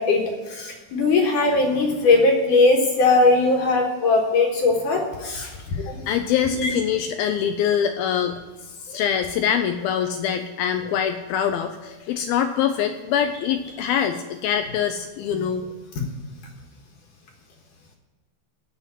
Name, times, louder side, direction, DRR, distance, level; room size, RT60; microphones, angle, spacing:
voice 1, 0.0-6.0 6.5-6.7, left 3 dB, 60° left, 1 dB, 2.5 m, -20 dB
voice 2, 6.1-15.7, left 8 dB, 85° left, 7 dB, 2.2 m, -24 dB
16.0 x 5.8 x 9.5 m, 1.3 s
omnidirectional pair, 4.8 m